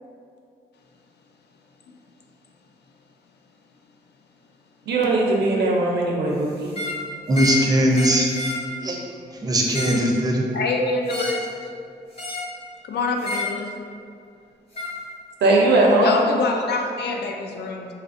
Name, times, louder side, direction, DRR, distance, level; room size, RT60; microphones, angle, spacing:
voice 1, 4.9-6.8 15.4-16.2, right 2 dB, 85° right, -1 dB, 0.6 m, -19 dB
sound 1, 6.6-7.0 7.3-7.6 7.9-8.6 9.5-10.1 11.1-11.5 12.2-12.5 13.2-13.5 14.7-14.9, left 2 dB, 35° left, 0.9 m, -29 dB
voice 2, 7.3-8.3 8.8-9.0 9.3-10.4, right 1 dB, 20° right, -1 dB, 0.5 m, -20 dB
voice 3, 10.5-11.5 12.8-13.7 16.0-17.9, left 3 dB, 75° left, 2 dB, 0.4 m, -26 dB
4.1 x 2.5 x 2.5 m, 2.3 s
wide cardioid pair, 120°, 17 cm